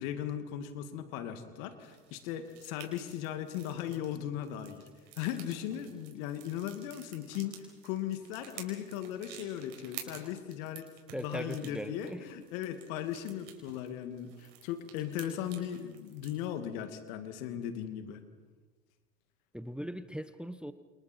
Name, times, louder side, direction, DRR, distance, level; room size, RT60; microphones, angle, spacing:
voice 1, 0.0-4.8 5.2-18.2, left 10 dB, 70° left, 8 dB, 2.5 m, -38 dB
sound 1, 1.8-16.4, right 11 dB, 70° right, 5.2 m, -51 dB
voice 2, 11.1-12.3 19.5-20.7, equal, ahead, 11 dB, 1.3 m, -39 dB
29.0 x 28.0 x 4.5 m, 1.4 s
hypercardioid pair, 75°, 42 cm